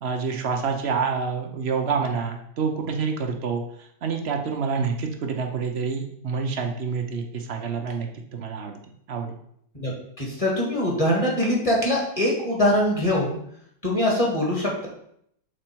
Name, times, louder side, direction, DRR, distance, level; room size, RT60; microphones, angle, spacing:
voice 1, 0.0-3.6 4.0-8.8 9.1-9.4, right 5 dB, 50° right, 4 dB, 0.8 m, -27 dB
voice 2, 10.2-13.4 13.8-14.9, left 1 dB, 20° left, -3 dB, 1.7 m, -23 dB
6.4 x 4.3 x 4.5 m, 0.70 s
omnidirectional pair, 1.8 m